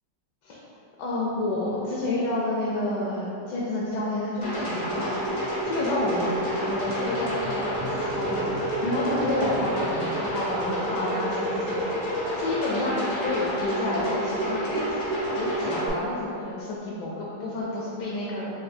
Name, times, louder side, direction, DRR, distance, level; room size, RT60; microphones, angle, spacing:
voice 1, 1.0-5.1 5.3-15.0 15.3-18.5, left 1 dB, 75° left, -5 dB, 1.1 m, -30 dB
sound 1, 4.4-15.9, equal, 45° left, 0.7 m, -29 dB
5.0 x 2.6 x 2.6 m, 2.8 s
omnidirectional pair, 1.9 m